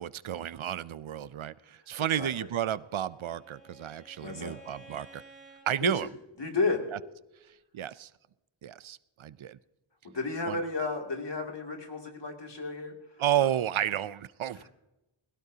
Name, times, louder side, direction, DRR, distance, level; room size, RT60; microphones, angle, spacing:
voice 1, 0.0-5.2 5.7-6.1 7.5-8.1 8.6-9.6 10.4-10.6 13.2-14.7, right 11 dB, 75° right, 18 dB, 0.6 m, -32 dB
Bowed string instrument, 2.5-5.7, right 2 dB, 15° right, 4.5 m, -54 dB
voice 2, 4.2-4.6 5.8-5.9 6.4-6.9 10.0-13.5 14.5-14.7, left 3 dB, 60° left, 2 dB, 2.7 m, -33 dB
20.5 x 17.0 x 2.8 m, 0.98 s
wide cardioid pair, 55°, 48 cm